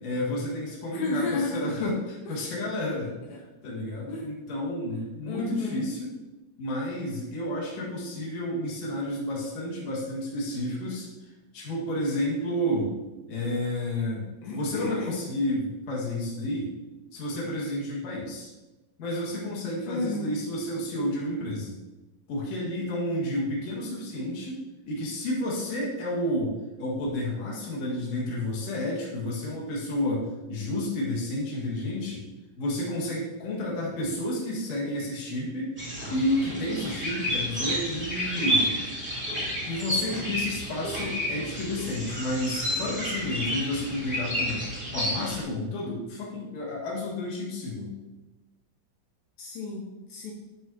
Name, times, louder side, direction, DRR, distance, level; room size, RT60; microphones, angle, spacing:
voice 1, 0.0-3.1 3.6-6.1 6.6-11.1 11.5-12.9 13.3-14.2 14.5-16.7 17.1-18.5 19.0-21.8 22.3-32.2 32.6-35.8 36.1-38.8 39.7-44.6 44.9-47.9, left 1 dB, 50° left, -4 dB, 2.2 m, -31 dB
voice 2, 0.9-1.6 3.3-3.4 4.1-4.3 5.3-5.8 14.4-15.1 19.9-20.4 49.4-50.3, left 3 dB, 85° left, -2 dB, 2.1 m, -32 dB
sound 1, 35.8-45.4, equal, 5° right, 1.1 m, -30 dB
11.5 x 5.5 x 2.9 m, 1.1 s
omnidirectional pair, 5.5 m